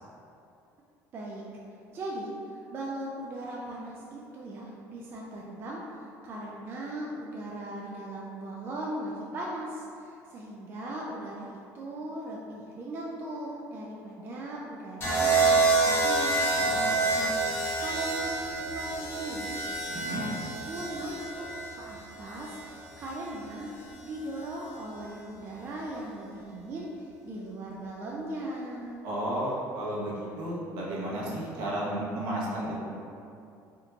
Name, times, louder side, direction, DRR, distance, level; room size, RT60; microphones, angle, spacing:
voice 1, 1.1-1.5 1.9-17.4 17.8-19.6 20.1-23.7 24.0-29.0, right 1 dB, 35° right, -4 dB, 0.3 m, -38 dB
sound 1, 15.0-23.1 24.4-24.7, right 3 dB, 30° left, 0.8 m, -28 dB
voice 2, 16.5-17.3 19.9-20.3 29.0-32.8, right 1 dB, 70° right, -6 dB, 0.9 m, -33 dB
3.5 x 2.8 x 2.4 m, 2.6 s
cardioid pair, 140°, 7 cm